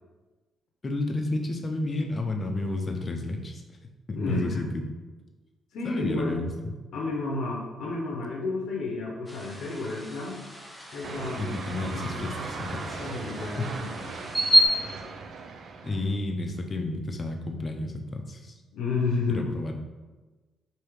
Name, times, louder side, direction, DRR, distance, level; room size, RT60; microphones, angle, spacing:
voice 1, 0.8-3.6 4.1-4.7 5.8-6.5 11.4-13.1 13.6-13.7 15.8-18.6 19.3-19.7, left 2 dB, 35° left, 4 dB, 0.5 m, -31 dB
voice 2, 4.1-4.6 5.7-6.4 6.9-10.4 10.9-12.6 13.0-14.3 18.7-19.5, left 3 dB, 75° left, -2 dB, 0.7 m, -31 dB
sound 1, 9.3-14.7, equal, 5° right, 0.7 m, -29 dB
sound 2, 11.0-16.1, right 4 dB, 60° right, 0.4 m, -38 dB
4.8 x 2.8 x 3.1 m, 1.3 s
cardioid pair, 90°, 0 cm